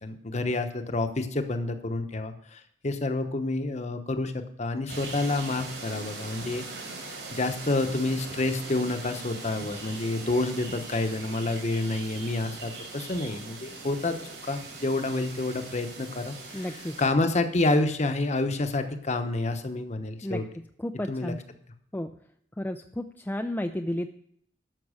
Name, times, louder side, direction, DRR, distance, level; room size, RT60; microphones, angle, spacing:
voice 1, 0.0-6.7 7.3-14.1 14.5-16.7 17.0-20.4 21.1-21.4, left 2 dB, 40° left, 8 dB, 1.0 m, -28 dB
sound 1, 4.9-17.1, right 3 dB, 85° right, 3.9 m, -41 dB
voice 2, 16.5-17.0 20.2-20.4 20.8-21.4 21.9-22.1 22.6-24.1, left 1 dB, 10° left, 5 dB, 0.4 m, -32 dB
12.5 x 5.9 x 6.4 m, 0.68 s
head